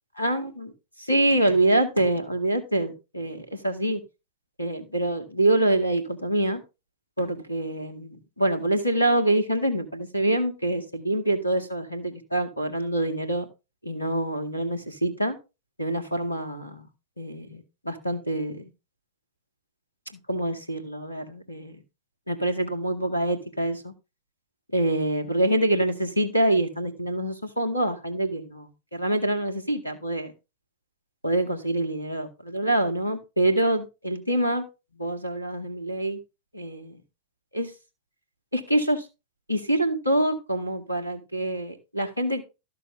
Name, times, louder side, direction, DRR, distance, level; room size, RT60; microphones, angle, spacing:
voice 1, 0.2-0.7 1.1-4.0 4.6-6.6 7.2-13.5 13.8-15.4 15.8-16.9 17.2-18.7 20.3-21.8 22.3-23.9 24.7-30.3 31.2-34.7 35.0-36.2 36.5-37.0 37.5-37.7 38.5-39.0 39.5-42.4, right 1 dB, 90° left, 7 dB, 1.9 m, -26 dB
13.0 x 6.7 x 3.8 m, 0.27 s
figure-of-eight pair, 90°, 0 cm